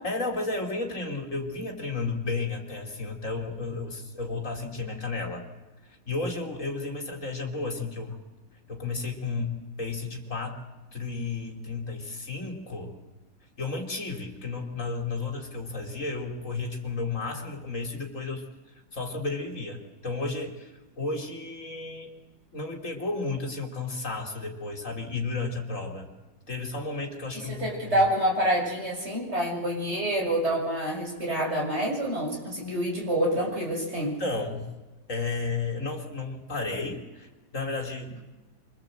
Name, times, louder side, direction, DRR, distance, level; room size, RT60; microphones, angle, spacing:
voice 1, 0.0-5.5 5.8-8.2 8.7-10.6 10.9-13.0 13.6-18.5 18.9-22.1 22.5-26.1 26.5-28.1 34.0-34.7 35.1-38.2, left 3 dB, 45° left, 2 dB, 3.5 m, -33 dB
voice 2, 27.3-34.2, right 1 dB, 35° right, -1 dB, 7.1 m, -27 dB
25.5 x 24.5 x 8.0 m, 1.2 s
omnidirectional pair, 1.9 m